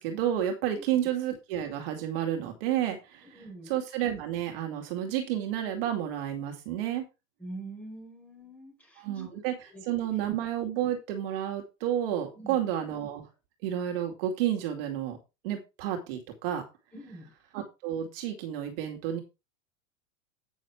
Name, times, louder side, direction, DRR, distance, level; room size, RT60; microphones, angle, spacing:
voice 1, 0.0-3.4 3.7-7.0 9.0-13.2 13.6-15.2 15.4-16.6 17.5-19.2, right 10 dB, 45° right, 3 dB, 2.4 m, -31 dB
voice 2, 3.2-3.7 7.4-9.8 12.3-12.6 16.9-17.3, right 2 dB, 5° left, 0 dB, 4.7 m, -45 dB
9.2 x 6.5 x 4.7 m, 0.27 s
supercardioid pair, 170°, 39 cm